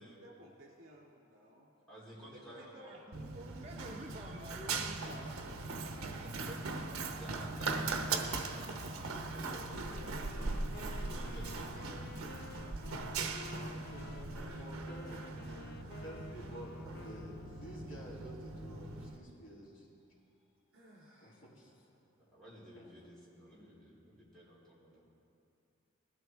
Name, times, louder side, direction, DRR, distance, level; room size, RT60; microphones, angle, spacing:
voice 1, 0.0-1.7 2.3-3.8 5.9-6.1 6.9-8.8 9.5-11.1 14.2-16.3 20.7-21.4 21.9-22.1 24.9-25.0, equal, 70° right, -3 dB, 3.0 m, -57 dB
voice 2, 1.9-2.9 7.2-8.7 9.0-10.4 10.9-12.8 14.3-14.7 22.2-25.0, equal, ahead, -9 dB, 3.7 m, -54 dB
voice 3, 2.9-5.4 5.8-6.8, right 1 dB, 30° right, 0 dB, 0.6 m, -49 dB
Run, 3.1-19.2, right 3 dB, 85° right, 0.8 m, -40 dB
Wind instrument woodwind instrument, 9.6-17.9, left 4 dB, 50° left, 0.3 m, -53 dB
voice 4, 13.5-15.3 16.0-19.9 21.1-21.7 22.7-23.0 23.5-23.7, right 1 dB, 70° left, -5 dB, 2.9 m, -51 dB
20.0 x 12.5 x 3.5 m, 2.6 s
head